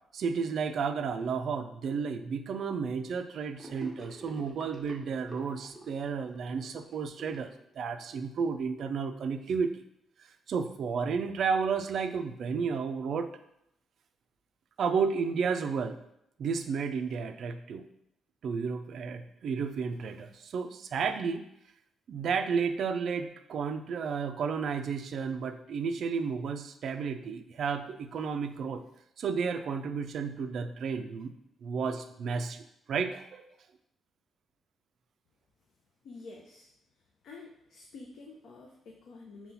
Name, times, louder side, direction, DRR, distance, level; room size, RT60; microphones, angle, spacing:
voice 1, 0.1-7.5 7.8-9.8 10.5-13.3 14.8-16.0 16.4-17.8 18.4-21.4 22.1-28.8 29.2-31.3 31.6-33.4, right 5 dB, 55° right, 8 dB, 0.3 m, -32 dB
Gurgling / Sink (filling or washing), 3.6-8.1, right 1 dB, 5° left, 0.7 m, -48 dB
voice 2, 36.0-36.7 37.2-39.5, left 3 dB, 65° left, -1 dB, 0.6 m, -48 dB
5.5 x 2.3 x 4.0 m, 0.78 s
cardioid pair, 170°, 0 cm